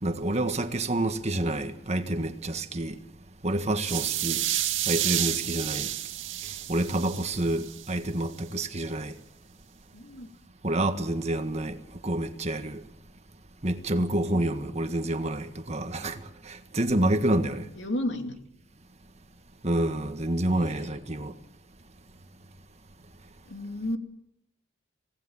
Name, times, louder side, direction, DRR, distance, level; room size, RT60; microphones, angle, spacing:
voice 1, 0.0-3.0 3.4-4.4 4.9-5.9 6.4-9.2 10.6-12.8 13.6-17.7 19.6-21.3, right 1 dB, 35° right, 1.7 m, -28 dB
sound 1, 3.8-7.9, right 12 dB, 85° right, 1.9 m, -30 dB
voice 2, 9.9-10.3 17.8-18.3 20.5-20.9 23.5-24.0, left 1 dB, 65° left, 2.7 m, -33 dB
25.5 x 18.0 x 7.3 m
head